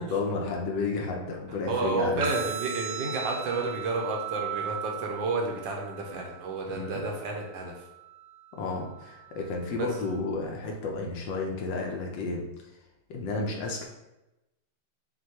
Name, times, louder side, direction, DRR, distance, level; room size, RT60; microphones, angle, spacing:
voice 1, 0.0-2.3 6.7-6.9 8.6-12.4 13.1-13.8, left 3 dB, 70° left, 0 dB, 1.2 m, -32 dB
voice 2, 1.7-7.7 9.8-9.9, right 3 dB, 75° right, 1 dB, 1.3 m, -31 dB
sound 1, 2.2-10.2, right 9 dB, 90° right, 1.5 m, -39 dB
6.4 x 2.2 x 2.9 m, 0.96 s
omnidirectional pair, 2.3 m